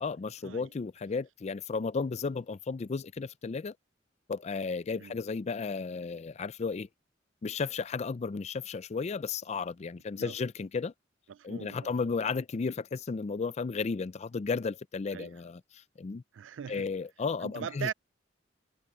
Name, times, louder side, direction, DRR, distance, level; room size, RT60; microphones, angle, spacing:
voice 1, 0.0-3.7 4.3-6.9 7.4-10.9 11.4-16.2 16.7-17.9, left 4 dB, 35° left, 0.4 m, -34 dB
voice 2, 11.3-12.2 15.1-15.3 16.3-16.9 17.4-17.9, right 8 dB, 85° right, 0.4 m, -40 dB
head